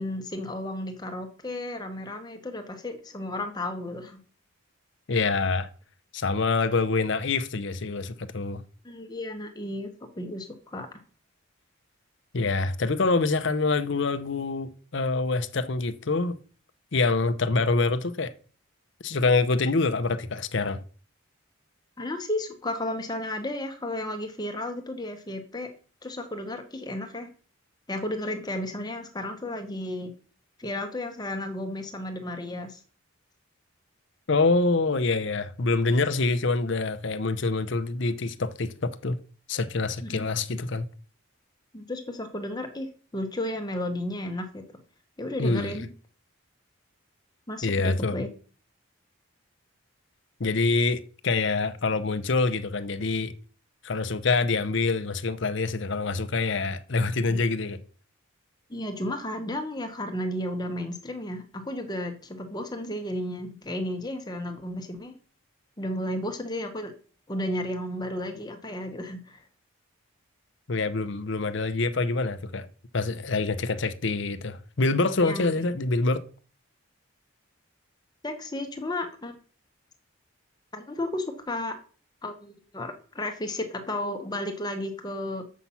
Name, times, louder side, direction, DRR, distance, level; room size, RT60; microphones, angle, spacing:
voice 1, 0.0-4.2 8.8-10.9 22.0-25.7 26.0-27.3 27.9-30.1 30.6-32.8 40.0-40.3 41.7-44.6 45.2-45.9 47.5-48.3 57.3-57.4 58.7-65.1 65.8-66.9 67.3-69.4 75.2-75.5 78.2-79.4 80.7-81.8 82.2-85.4, left 1 dB, 20° left, 0.9 m, -33 dB
voice 2, 5.1-5.7 6.1-8.6 12.3-16.4 16.9-18.3 19.0-20.8 34.3-39.2 39.5-40.8 45.4-45.8 47.6-48.1 50.4-53.3 53.8-57.8 70.7-72.7 72.9-76.2, left 3 dB, 55° left, 0.7 m, -26 dB
7.3 x 5.8 x 5.6 m
head